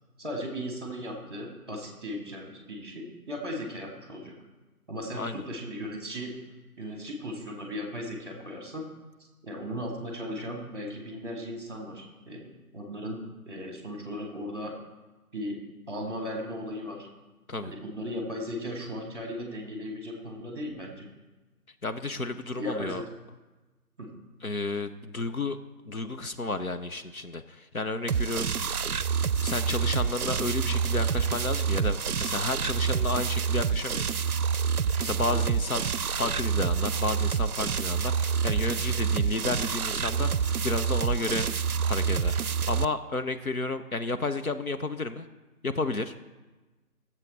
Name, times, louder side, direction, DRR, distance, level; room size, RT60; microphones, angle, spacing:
voice 1, 0.2-4.3 4.9-6.3 6.8-8.9 9.4-13.2 13.4-14.7 15.3-15.6 15.9-17.1 17.6-21.1 22.5-23.0 24.0-24.1 35.3-35.4, equal, 15° right, 1 dB, 1.8 m, -37 dB
voice 2, 21.8-23.0 24.4-25.6 25.8-28.6 29.4-34.2 35.0-35.9 36.2-41.5 41.8-45.3 45.6-46.1, left 3 dB, 65° left, 9 dB, 0.8 m, -32 dB
sound 1, 28.1-42.9, right 6 dB, 70° right, 0.5 m, -27 dB
15.0 x 7.4 x 4.1 m, 1.2 s
figure-of-eight pair, 165°, 46 cm